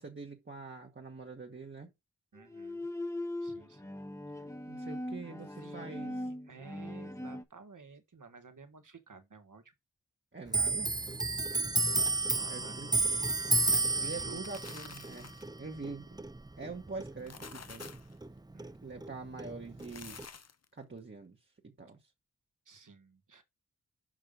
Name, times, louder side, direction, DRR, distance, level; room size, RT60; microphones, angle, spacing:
voice 1, 0.0-1.9 4.7-6.2 10.3-11.0 12.5-13.0 14.0-15.3 15.6-16.2 16.6-17.9 18.8-20.2 20.7-21.4 21.6-22.0, right 3 dB, 35° right, 1.2 m, -44 dB
voice 2, 2.3-2.9 3.4-4.0 5.6-9.7 11.5-12.8 14.0-14.4 18.5-19.0 22.6-23.4, right 4 dB, 75° right, 1.5 m, -54 dB
Bowed string instrument, 2.4-7.4, left 1 dB, 10° left, 0.9 m, -40 dB
Clock, 10.5-17.5 17.8-19.1 19.4-20.2, right 3 dB, 15° right, 0.4 m, -32 dB
sound 1, 14.3-15.6 17.0-18.1 19.7-20.7, left 6 dB, 55° left, 0.7 m, -49 dB
6.3 x 5.4 x 5.2 m
wide cardioid pair, 90°, 31 cm